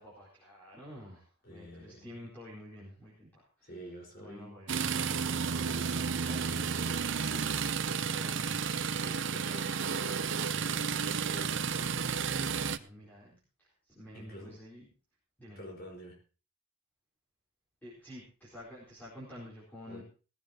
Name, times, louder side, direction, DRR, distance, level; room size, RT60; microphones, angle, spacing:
voice 1, 0.0-3.7 4.2-5.0 7.9-9.0 12.4-14.9 15.4-15.6 17.8-20.0, equal, 10° left, -7 dB, 4.4 m, -50 dB
voice 2, 1.4-2.3 3.6-4.5 5.3-7.5 8.1-8.7 9.0-12.3 14.1-14.6 15.6-16.2 19.9-20.0, equal, 45° left, 2 dB, 4.7 m, -49 dB
sound 1, 4.7-12.8, right 6 dB, 55° right, 0.7 m, -32 dB
18.0 x 14.5 x 2.9 m, 0.35 s
head